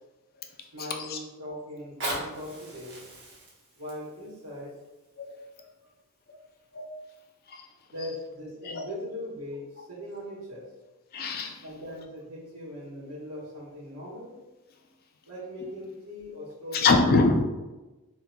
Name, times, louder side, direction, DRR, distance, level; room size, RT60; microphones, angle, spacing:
voice 1, 0.7-3.0 3.8-4.7 5.6-5.7 6.3-6.5 7.9-10.7 11.6-14.4 15.3-17.2, left 1 dB, 80° right, -5 dB, 1.2 m, -40 dB
Fire, 1.7-6.7 7.3-7.4, right 1 dB, 55° right, 0.9 m, -40 dB
voice 2, 11.1-11.6 16.7-17.4, left 3 dB, 45° left, 3 dB, 0.4 m, -24 dB
3.8 x 2.8 x 2.2 m, 1.1 s
head